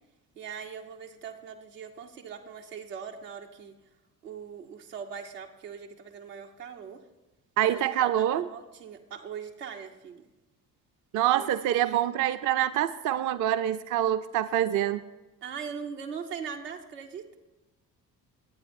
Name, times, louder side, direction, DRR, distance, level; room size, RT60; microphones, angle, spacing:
voice 1, 0.4-3.7 4.2-7.0 7.6-10.3 11.3-11.5 11.8-12.0 15.4-17.4, right 6 dB, 80° right, 2 dB, 1.0 m, -41 dB
voice 2, 7.6-8.4 11.1-15.0, right 11 dB, 40° right, 12 dB, 0.5 m, -26 dB
21.0 x 8.8 x 2.6 m, 1.1 s
figure-of-eight pair, 50°, 47 cm